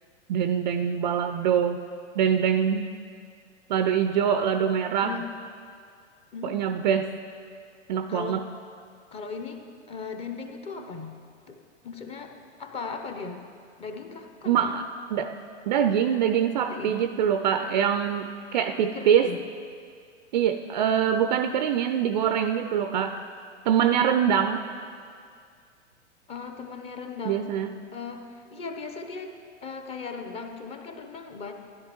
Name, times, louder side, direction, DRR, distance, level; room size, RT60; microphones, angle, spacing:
voice 1, 0.3-1.8 2.2-2.9 3.7-5.2 6.4-7.1 7.9-8.4 14.5-15.3 15.7-19.3 20.3-23.2 23.7-24.6 27.2-27.7, right 8 dB, 40° right, 9 dB, 0.4 m, -24 dB
voice 2, 6.3-6.8 8.1-8.4 9.1-11.1 11.5-11.6 11.8-13.4 13.8-14.7 16.7-17.0 18.8-19.4 26.3-27.5 27.9-29.3 29.6-31.5, left 4 dB, 15° left, 5 dB, 0.7 m, -37 dB
16.0 x 11.0 x 3.1 m, 2.2 s
figure-of-eight pair, 105°, 36 cm